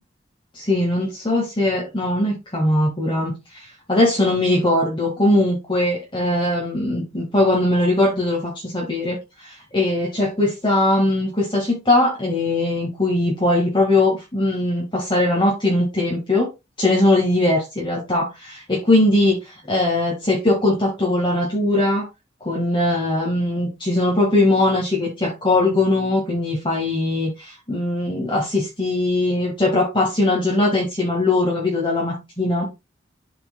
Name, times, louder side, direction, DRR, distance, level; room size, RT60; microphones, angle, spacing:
voice 1, 0.5-16.5 16.8-19.4 19.7-22.1 22.4-32.7, left 2 dB, 25° left, 1.8 m, -20 dB
12.0 x 4.4 x 2.3 m
head